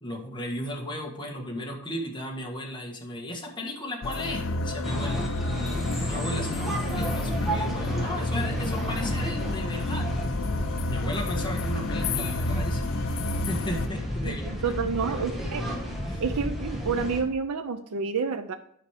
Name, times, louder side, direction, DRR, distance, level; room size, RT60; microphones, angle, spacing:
voice 1, 0.0-5.2 5.5-5.6 6.0-10.1 10.9-12.9 13.5-14.8 15.1-15.2 16.1-16.2, left 1 dB, 20° left, 0 dB, 1.7 m, -35 dB
sound 1, 4.0-13.9, left 2 dB, 65° left, 0.7 m, -30 dB
sound 2, 4.8-17.2, equal, ahead, 1.7 m, -32 dB
voice 2, 14.2-15.6 16.2-18.5, right 5 dB, 75° right, 8 dB, 0.6 m, -29 dB
9.6 x 5.3 x 4.9 m, 0.71 s
head